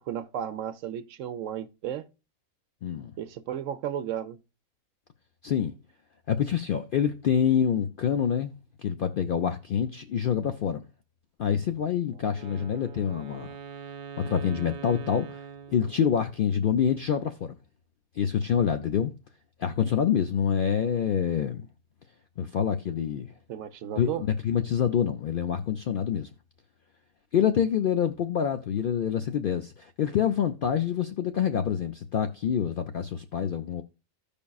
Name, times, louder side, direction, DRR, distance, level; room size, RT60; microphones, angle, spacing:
voice 1, 0.0-2.1 3.2-4.4 23.5-24.2, right 10 dB, 70° right, 1.0 m, -34 dB
voice 2, 2.8-3.1 5.4-5.7 6.3-8.5 8.8-10.8 11.4-13.5 14.2-15.4 15.7-17.5 18.2-19.1 19.6-21.7 22.4-23.3 24.0-26.3 27.3-33.8, left 8 dB, 70° left, 0.5 m, -26 dB
Wind instrument woodwind instrument, 12.3-16.5, right 7 dB, 55° right, 0.6 m, -43 dB
15.5 x 5.3 x 2.3 m
omnidirectional pair, 1.4 m